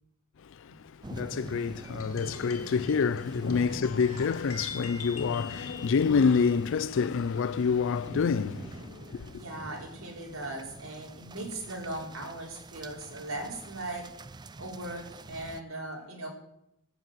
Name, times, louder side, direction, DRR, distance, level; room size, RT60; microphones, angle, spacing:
voice 1, 0.4-9.4, left 5 dB, 60° left, 0.4 m, -28 dB
sound 1, 1.0-15.6, right 2 dB, 20° right, 0.5 m, -46 dB
sound 2, 1.8-6.6, left 5 dB, 85° left, 2.3 m, -44 dB
voice 2, 9.3-14.1 14.6-16.3, right 2 dB, 70° right, 4.2 m, -39 dB
16.0 x 7.2 x 8.0 m
head